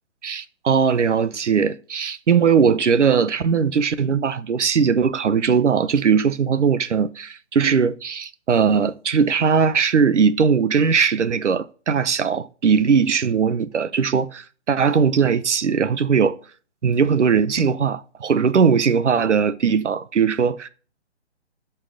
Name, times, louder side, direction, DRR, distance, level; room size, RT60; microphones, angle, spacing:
voice 1, 0.2-16.4 16.8-20.7, right 6 dB, 80° right, 1.0 m, -19 dB
11.0 x 4.6 x 3.8 m
hypercardioid pair, 170°, 35 cm